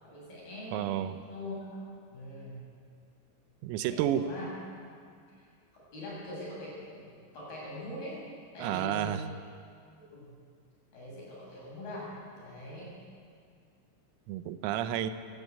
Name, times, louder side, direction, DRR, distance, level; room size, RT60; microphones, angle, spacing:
voice 1, 0.0-0.9 1.3-1.6 2.1-2.7 3.9-4.5 5.7-8.2 8.5-9.3 10.1-10.3 10.9-13.0, left 1 dB, 45° left, -5 dB, 9.6 m, -42 dB
voice 2, 0.7-1.2 3.6-4.3 8.6-9.2 14.3-15.1, right 11 dB, 85° right, 10 dB, 3.7 m, -30 dB
26.5 x 16.0 x 8.5 m, 2.2 s
omnidirectional pair, 6.0 m